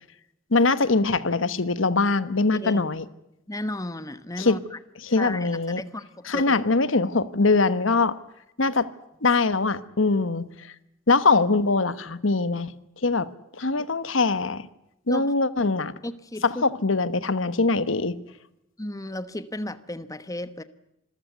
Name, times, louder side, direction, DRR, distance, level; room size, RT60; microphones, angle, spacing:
voice 1, 0.5-3.0 4.4-4.6 5.0-5.8 6.3-8.1 8.6-8.9 9.2-10.5 11.1-12.7 13.0-13.3 13.6-14.7 15.1-15.9 16.4-18.1, left 3 dB, 80° left, 14 dB, 1.2 m, -22 dB
voice 2, 2.5-2.8 3.5-4.8 5.2-5.5 5.8-6.6 15.1-15.3 16.0-16.6 18.8-20.6, left 1 dB, 20° left, 13 dB, 1.1 m, -34 dB
26.0 x 15.0 x 9.4 m, 0.84 s
head